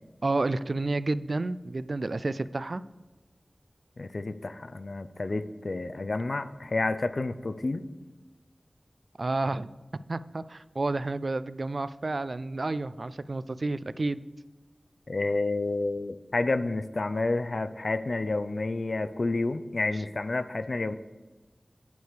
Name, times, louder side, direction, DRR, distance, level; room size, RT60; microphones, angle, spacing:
voice 1, 0.2-2.8 9.2-9.7 10.1-14.2, right 2 dB, 60° right, 15 dB, 0.3 m, -30 dB
voice 2, 4.0-7.8 15.1-20.9, left 2 dB, 65° left, 12 dB, 0.5 m, -30 dB
9.4 x 4.7 x 6.7 m, 1.2 s
wide cardioid pair, 70°, 0 cm